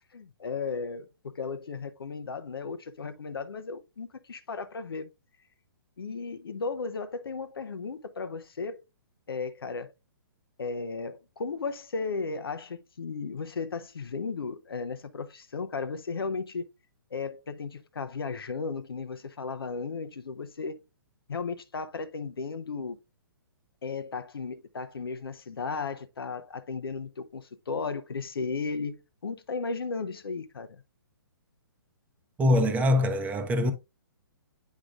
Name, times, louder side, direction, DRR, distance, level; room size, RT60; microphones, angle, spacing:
voice 1, 0.1-5.1 6.0-8.8 9.3-9.9 10.6-16.7 17.1-20.8 21.3-23.0 23.8-30.8, left 4 dB, 75° left, 0.7 m, -35 dB
voice 2, 32.4-33.7, left 1 dB, 10° right, 0.7 m, -23 dB
8.2 x 4.9 x 2.4 m
hypercardioid pair, 135°, 12 cm